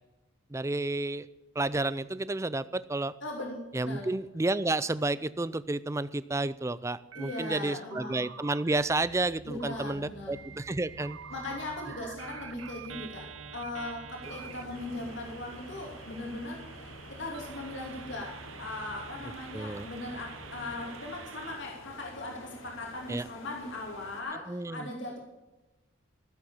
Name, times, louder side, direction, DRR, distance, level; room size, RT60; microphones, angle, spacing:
voice 1, 0.5-1.3 1.6-3.1 3.7-11.2 19.5-19.9 23.1-23.2 24.5-24.9, right 2 dB, 15° right, 16 dB, 0.4 m, -31 dB
voice 2, 3.2-4.1 7.1-8.2 9.4-10.4 11.3-25.2, left 2 dB, 60° left, 0 dB, 2.8 m, -39 dB
sound 1, 7.1-7.6 7.9-9.3 9.6-9.9 10.3-21.6, right 7 dB, 75° right, 0.9 m, -47 dB
sound 2, 8.7-20.8, right 2 dB, 20° left, 2.0 m, -52 dB
sound 3, 14.2-24.2, left 2 dB, 80° left, 3.0 m, -49 dB
15.5 x 7.9 x 7.1 m, 1.1 s
head